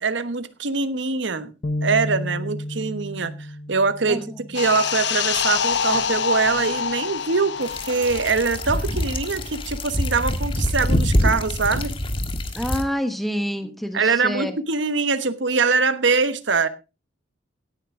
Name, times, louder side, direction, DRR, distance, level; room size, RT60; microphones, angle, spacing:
voice 1, 0.0-1.5 1.8-3.3 3.7-11.9 13.9-16.7, right 4 dB, 80° right, 1.1 m, -23 dB
sound 1, 1.6-5.2, left 1 dB, 45° left, 0.6 m, -32 dB
voice 2, 4.1-4.4 12.5-14.6, equal, ahead, 1.3 m, -27 dB
sound 2, 4.5-9.6 9.9-10.1, left 7 dB, 70° left, 0.9 m, -26 dB
sound 3, 7.6-12.8, left 1 dB, 30° left, 1.5 m, -25 dB
17.0 x 9.4 x 3.7 m
head